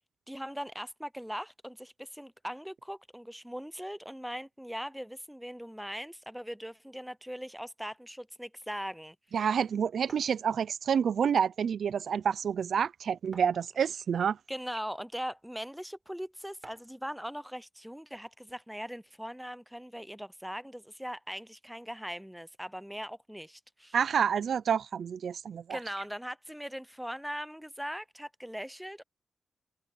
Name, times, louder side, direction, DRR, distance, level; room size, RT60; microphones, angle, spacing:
voice 1, 0.3-9.5 14.5-24.0 25.7-29.0, equal, ahead, 0.6 m, -40 dB
voice 2, 9.3-14.4 23.9-25.8, right 7 dB, 70° right, 0.4 m, -28 dB
sound 1, 10.1-10.4 11.5-11.6 12.0-12.1 13.3-14.0 14.8-14.9 16.6-17.0, right 2 dB, 25° right, 4.5 m, -52 dB
wide cardioid pair, 115°, 0 cm